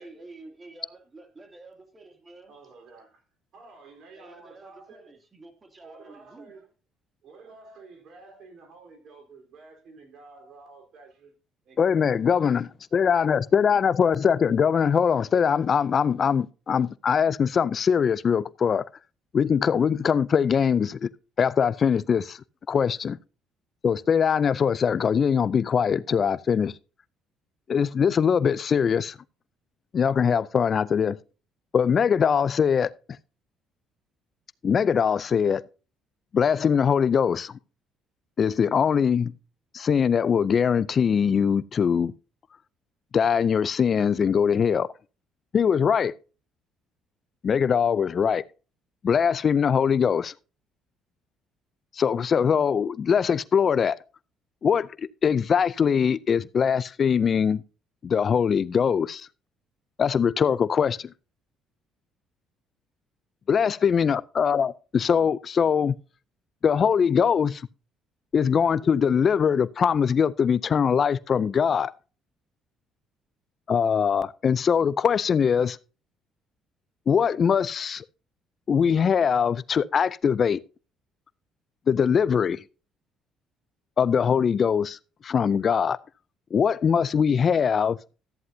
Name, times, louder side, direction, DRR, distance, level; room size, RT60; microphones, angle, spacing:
voice 1, 0.0-2.5 4.1-6.5, right 2 dB, 30° right, 2.8 m, -49 dB
voice 2, 2.5-3.1 3.5-5.1 5.8-6.7 7.2-11.3 11.6-12.2, right 3 dB, 65° right, 4.0 m, -50 dB
voice 3, 11.8-18.8 19.3-21.1 21.4-22.4 22.7-23.2 23.8-26.7 27.7-29.2 29.9-31.2 31.7-32.9 34.6-35.6 36.3-37.5 38.4-39.3 39.7-42.1 43.1-44.9 45.5-46.1 47.4-48.4 49.0-50.3 51.9-54.0 54.6-54.9 55.2-57.6 58.0-59.3 60.0-61.1 63.5-66.0 66.6-67.7 68.3-71.9 73.7-75.8 77.1-78.0 78.7-80.6 81.9-82.6 84.0-85.0 85.2-86.0 86.5-88.0, left 7 dB, 45° left, 0.4 m, -22 dB
14.0 x 9.4 x 2.7 m
supercardioid pair, 80°, 0 cm